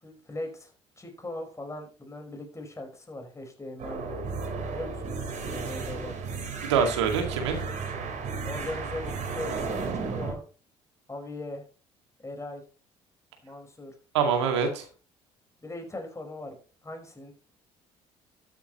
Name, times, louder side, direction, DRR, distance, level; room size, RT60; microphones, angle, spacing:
voice 1, 0.0-4.2 4.7-5.0 5.5-6.2 8.4-9.7 9.9-10.4 11.1-11.6 12.2-12.6 13.4-13.9 15.6-16.5 16.8-17.3, left 2 dB, 20° left, 3 dB, 4.9 m, -39 dB
sound 1, 3.8-10.3, right 4 dB, 55° right, 4.2 m, -34 dB
voice 2, 6.6-7.6 14.1-14.9, right 6 dB, 85° right, 4 dB, 2.2 m, -25 dB
13.0 x 8.7 x 3.1 m, 0.35 s
hypercardioid pair, 55°, 14 cm